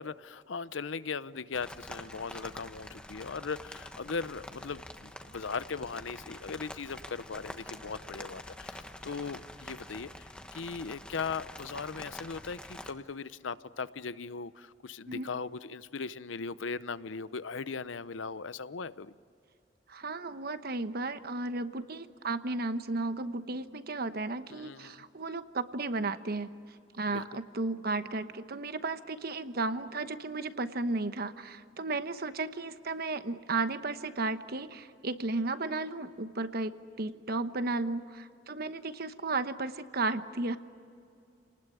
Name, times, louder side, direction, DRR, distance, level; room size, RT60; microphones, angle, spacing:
voice 1, 0.0-19.1 24.5-25.0 27.1-27.3, left 5 dB, 85° left, 15 dB, 0.7 m, -39 dB
sound 1, 1.5-12.9, left 1 dB, 5° left, 1.2 m, -46 dB
voice 2, 19.9-26.5 26.9-40.6, right 3 dB, 55° right, 11 dB, 1.1 m, -34 dB
29.0 x 19.5 x 9.4 m, 2.5 s
head